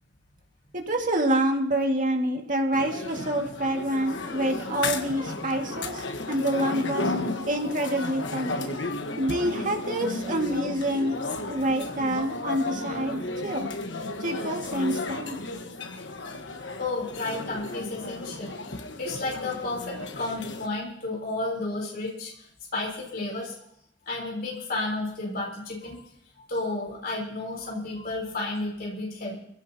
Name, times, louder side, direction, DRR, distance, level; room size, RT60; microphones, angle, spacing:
voice 1, 0.7-7.1 7.4-8.7 9.2-11.2 11.5-13.7 14.2-15.4, right 1 dB, 45° right, 2 dB, 2.0 m, -27 dB
sound 1, 2.7-20.7, left 2 dB, 80° left, 1.3 m, -34 dB
voice 2, 16.8-18.5 19.0-22.5 22.7-23.6 24.1-26.0 26.5-29.4, left 2 dB, 55° left, -3 dB, 4.1 m, -32 dB
23.5 x 16.5 x 2.9 m, 0.75 s
head